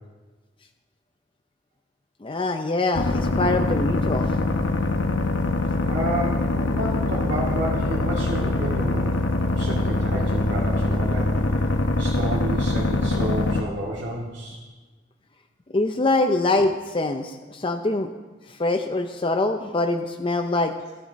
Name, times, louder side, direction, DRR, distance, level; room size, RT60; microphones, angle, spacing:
voice 1, 2.2-4.3 15.7-18.1 18.5-20.8, left 2 dB, 30° left, 6 dB, 0.5 m, -24 dB
sound 1, 3.0-13.6, left 2 dB, 80° left, 1.0 m, -23 dB
voice 2, 5.8-9.2 9.5-11.3 12.0-14.6, right 1 dB, 75° right, -6 dB, 2.1 m, -30 dB
13.5 x 11.0 x 4.1 m, 1.3 s
head